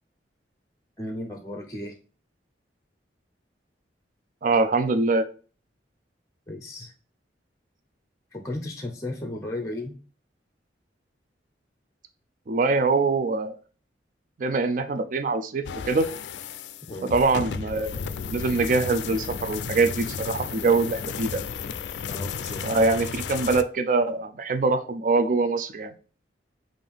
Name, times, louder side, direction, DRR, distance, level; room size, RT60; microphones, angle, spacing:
voice 1, 1.0-1.9 6.5-6.9 8.3-9.9 16.9-17.1 22.1-22.6, left 1 dB, 20° left, 4 dB, 0.6 m, -34 dB
voice 2, 4.4-5.3 12.5-13.6 14.4-16.1 17.0-18.0 18.3-21.4 22.6-25.9, right 3 dB, 50° right, 10 dB, 0.4 m, -23 dB
sound 1, 15.7-23.6, left 6 dB, 75° left, 0.4 m, -33 dB
5.3 x 2.6 x 3.5 m, 0.38 s
head